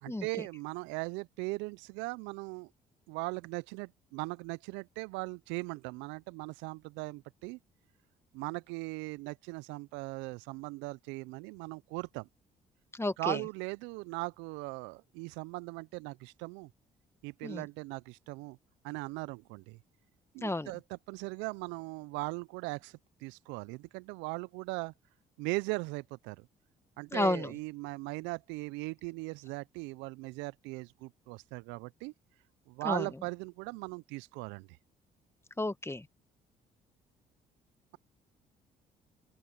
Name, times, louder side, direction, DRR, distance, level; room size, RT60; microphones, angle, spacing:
voice 1, 0.0-2.7 3.1-7.6 8.3-12.3 13.2-16.7 17.2-18.6 18.8-19.8 20.3-24.9 25.4-26.5 27.0-32.1 32.7-34.7, right 25 dB, 75° right, 0.6 m, -39 dB
voice 2, 12.9-13.4 17.4-17.6 20.4-20.7 27.1-27.5 32.8-33.1 35.6-36.1, left 2 dB, 15° left, 1.5 m, -32 dB
open air
hypercardioid pair, 55°, 19 cm